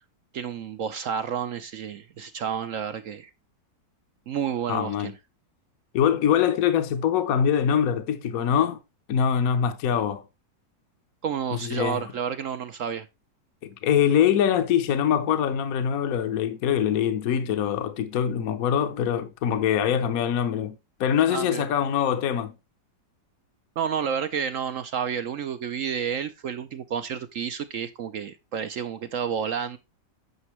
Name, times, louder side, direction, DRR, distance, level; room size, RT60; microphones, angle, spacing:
voice 1, 0.3-3.3 4.3-5.1 11.2-13.1 21.3-21.6 23.8-29.8, right 7 dB, 65° right, 0.8 m, -30 dB
voice 2, 4.7-5.1 5.9-8.8 9.1-10.2 11.5-12.0 13.6-22.5, left 9 dB, 60° left, 1.1 m, -23 dB
9.7 x 6.9 x 3.1 m
omnidirectional pair, 1.9 m